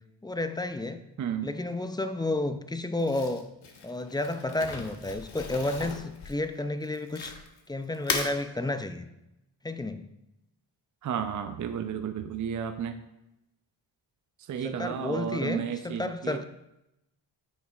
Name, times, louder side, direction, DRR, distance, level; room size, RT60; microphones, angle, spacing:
voice 1, 0.2-1.0 1.4-3.5 3.8-7.4 7.7-9.1 9.6-10.1 14.6-16.4, left 2 dB, 10° left, 10 dB, 0.4 m, -31 dB
voice 2, 1.2-1.5 11.0-13.0 14.4-16.4, right 8 dB, 40° right, 8 dB, 0.6 m, -33 dB
Crumpling crinkling, 3.0-7.6 7.9-8.3, left 5 dB, 60° left, 1.2 m, -36 dB
10.0 x 7.2 x 2.4 m, 0.89 s
cardioid pair, 90°, 45 cm